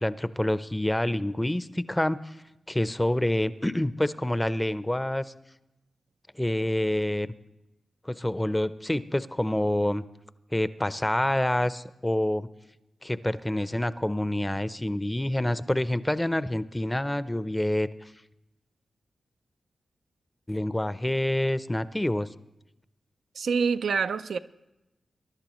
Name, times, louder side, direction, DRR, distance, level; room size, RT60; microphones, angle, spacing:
voice 1, 0.0-2.3 2.7-5.3 6.4-7.3 8.1-10.0 10.5-12.5 13.0-17.9 20.5-22.3, left 1 dB, 15° left, 0.6 m, -27 dB
voice 2, 23.4-24.4, right 5 dB, 80° right, 0.4 m, -26 dB
22.5 x 11.5 x 3.0 m
cardioid pair, 40°, 0 cm